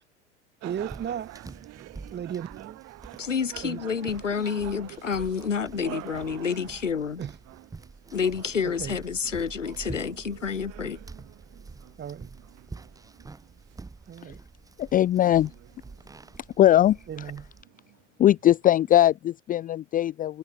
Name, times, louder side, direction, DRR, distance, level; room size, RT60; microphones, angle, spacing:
voice 1, 0.6-1.3 2.1-2.8 3.6-3.8 4.3-4.8 5.3-5.5 7.2-7.3 8.6-9.0 12.0-12.3 14.1-14.4 17.1-17.5, right 9 dB, 30° right, 3.4 m, -36 dB
sound 1, 0.6-19.2, right 20 dB, 45° right, 2.1 m, -48 dB
sound 2, 0.7-17.6, right 3 dB, 10° right, 1.1 m, -47 dB
voice 2, 3.2-7.2 8.1-11.0, left 6 dB, 85° left, 1.1 m, -29 dB
voice 3, 14.8-15.5 16.6-17.3 18.2-20.4, left 12 dB, 25° left, 0.6 m, -20 dB
figure-of-eight pair, 80°, 37 cm